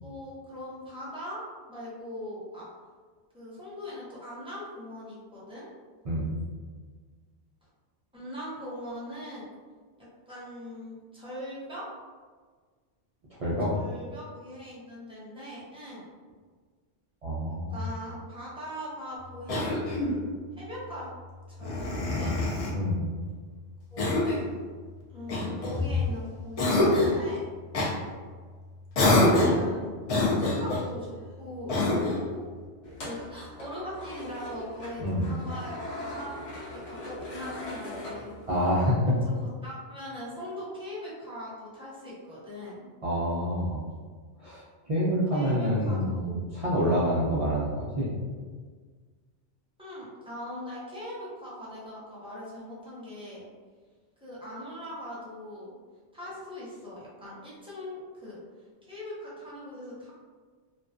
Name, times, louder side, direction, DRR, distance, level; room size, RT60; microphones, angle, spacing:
voice 1, 0.0-1.4 1.7-2.7 3.3-5.7 8.1-9.4 10.3-11.9 13.7-16.0 17.7-19.9 20.6-21.1 21.5-22.3 23.9-24.2 25.1-27.5 29.0-31.8 32.0-32.5 33.0-36.4 36.7-38.4 39.2-42.8 45.3-46.5 47.0-47.2 49.8-53.4 54.2-55.7 56.1-60.1, left 1 dB, 5° right, -8 dB, 0.5 m, -41 dB
voice 2, 6.0-6.4 13.4-13.7 17.2-17.8 22.7-23.0 35.0-35.3 38.5-39.2 43.0-43.8 44.4-48.1, equal, 70° right, -8 dB, 0.3 m, -27 dB
Cough, 19.5-20.2 21.6-22.8 24.0-24.5 25.3-26.1 26.6-27.2 27.7-27.9 28.9-29.7 30.1-30.9 31.7-32.3, left 2 dB, 65° left, 0.3 m, -25 dB
sound 1, 32.8-38.9, left 1 dB, 85° left, 1.0 m, -40 dB
2.2 x 2.2 x 2.5 m, 1.5 s
omnidirectional pair, 1.2 m